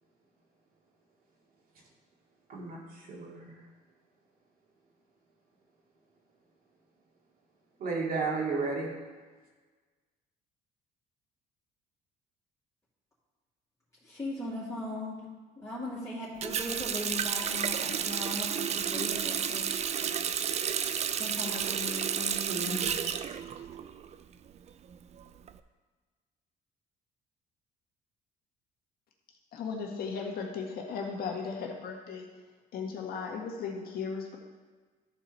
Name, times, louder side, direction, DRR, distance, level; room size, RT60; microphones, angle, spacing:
voice 1, 2.5-3.6 7.8-8.9 22.5-22.9, right 4 dB, 55° right, -2 dB, 2.5 m, -33 dB
voice 2, 14.0-15.2 15.6-19.7 21.2-22.9, left 2 dB, 15° left, -9 dB, 2.9 m, -39 dB
Water tap faucet, 16.4-24.1 24.5-25.5, right 8 dB, 40° right, 0.5 m, -31 dB
voice 3, 29.5-32.2 32.7-34.4, left 5 dB, 65° left, 0 dB, 1.8 m, -36 dB
13.5 x 4.5 x 4.2 m, 1.4 s
cardioid pair, 110°, 17 cm